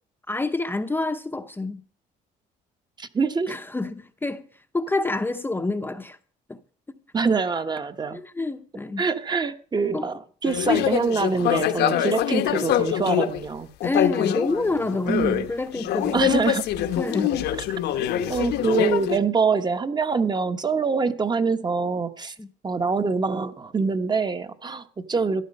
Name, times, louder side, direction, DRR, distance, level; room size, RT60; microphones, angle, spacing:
voice 1, 0.3-1.8 3.5-4.5 4.7-6.2 6.5-6.6 8.1-9.0 9.9-10.1 13.8-16.3 17.0-17.4 22.4-22.5, left 3 dB, 10° left, 0.8 m, -28 dB
voice 2, 3.0-3.5 7.1-8.2 9.0-13.7 15.1-15.5 16.1-16.7 18.3-22.3 22.6-25.4, right 4 dB, 25° right, 1.0 m, -25 dB
sound 1, 10.4-13.4 13.8-15.5 15.8-19.2, left 10 dB, 75° left, 1.1 m, -24 dB
13.5 x 10.5 x 5.4 m
cardioid pair, 110°, 17 cm